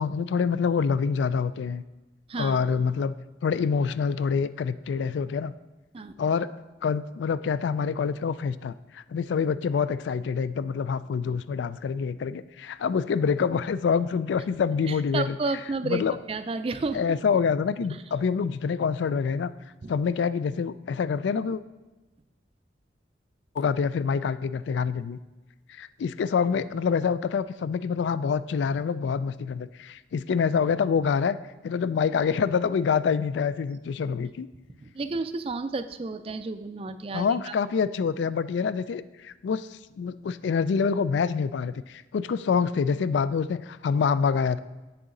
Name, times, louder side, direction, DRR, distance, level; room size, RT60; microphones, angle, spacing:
voice 1, 0.0-1.8 2.4-3.1 3.4-5.5 6.2-6.5 6.8-15.4 15.8-16.2 16.9-19.5 19.9-21.6 23.6-25.2 25.7-31.4 31.6-34.5 37.1-39.7 40.0-44.6, left 6 dB, 75° left, 15 dB, 0.3 m, -26 dB
voice 2, 14.9-16.0 16.3-17.2 19.8-19.9 34.8-37.5, right 3 dB, 30° right, 10 dB, 0.3 m, -31 dB
8.1 x 6.8 x 3.8 m, 1.1 s
head